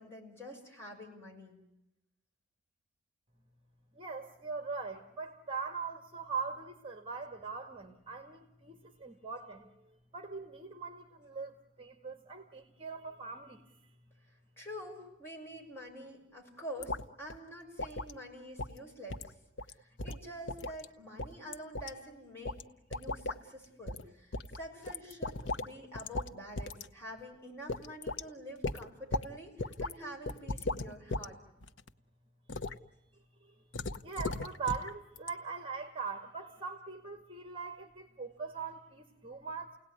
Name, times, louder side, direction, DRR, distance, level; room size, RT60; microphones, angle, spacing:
voice 1, 0.0-1.6 14.6-19.3 19.8-22.6 22.9-31.4, equal, 15° left, -1 dB, 6.9 m, -47 dB
voice 2, 3.9-13.9 33.1-39.8, right 5 dB, 30° right, 7 dB, 2.1 m, -41 dB
sound 1, 16.8-17.0 17.3-17.4 17.8-18.1 18.6-18.8 19.1-19.3 19.6-19.7 20.0-20.8 21.2-21.9 22.4-22.6 22.9-23.4 23.9-24.0 24.3-25.7 25.9-26.3 26.6-26.9 27.2-27.3 27.7-28.2 28.6-29.3 29.6-29.9 30.3-31.3 31.6-31.9 32.5-32.8 33.7-34.9 35.2-35.3, left 2 dB, 75° left, 1.0 m, -37 dB
30.0 x 18.5 x 9.8 m, 0.86 s
head